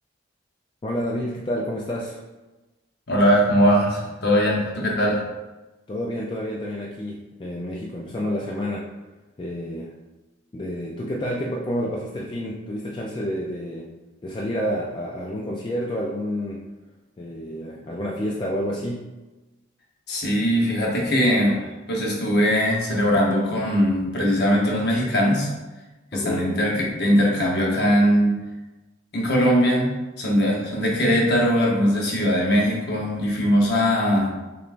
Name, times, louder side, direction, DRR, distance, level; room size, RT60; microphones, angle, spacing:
voice 1, 0.8-2.2 5.9-8.9 9.4-9.9 10.5-13.9 14.2-16.6 17.2-19.1 26.1-26.4, equal, 25° left, -3 dB, 0.3 m, -29 dB
voice 2, 3.1-5.2 20.1-25.5 26.1-28.3 29.1-34.3, equal, 55° left, -2 dB, 0.9 m, -20 dB
6.6 x 2.3 x 2.5 m, 1.1 s
head